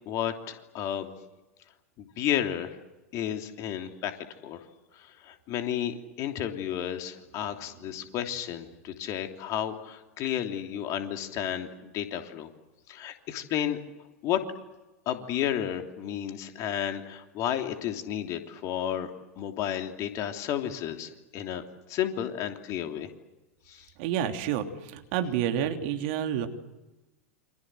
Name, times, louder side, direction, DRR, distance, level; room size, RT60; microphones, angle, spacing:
voice 1, 0.1-1.1 2.0-2.8 3.1-4.6 5.0-12.5 12.9-13.8 14.2-14.5 15.0-19.1 19.4-21.6 21.9-23.1 23.7-23.9, left 10 dB, 40° left, 5 dB, 3.1 m, -32 dB
voice 2, 24.0-26.5, right 9 dB, 55° right, 6 dB, 3.1 m, -29 dB
28.5 x 26.0 x 7.8 m, 1.1 s
figure-of-eight pair, 90°, 8 cm